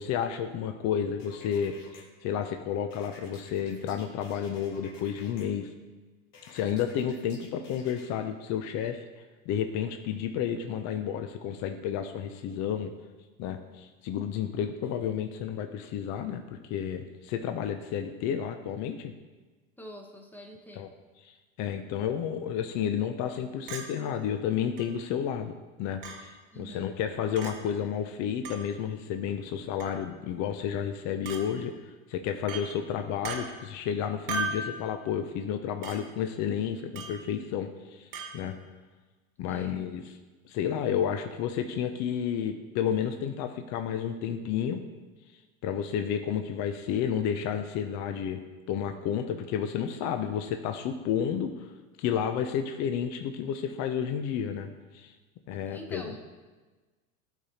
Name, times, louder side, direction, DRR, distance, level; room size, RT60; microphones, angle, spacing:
voice 1, 0.0-5.7 6.5-9.0 9.5-12.9 13.4-19.1 20.8-20.9 21.2-25.5 25.8-31.7 32.1-38.5 39.4-40.1 40.4-44.8 45.6-48.4 48.7-51.7 52.0-55.1 55.5-56.1, left 8 dB, 40° left, 7 dB, 0.5 m, -31 dB
sound 1, 1.2-2.0 2.9-5.4 6.3-8.1, left 3 dB, 65° left, 1.6 m, -52 dB
voice 2, 19.8-20.9 26.5-26.9 39.5-39.9 55.7-56.2, equal, 5° left, 2 dB, 0.8 m, -45 dB
Chink clink, 23.7-23.9 24.8-24.9 26.0-26.2 27.4-27.5 28.4-28.6 29.8-30.0 31.2-31.4 32.5-32.7 33.2-33.4 34.3-34.6 35.8-36.0 36.9-37.2 38.1-38.3, right 4 dB, 55° right, 1.3 m, -35 dB
12.0 x 4.1 x 2.8 m, 1.3 s
hypercardioid pair, 105°, 41 cm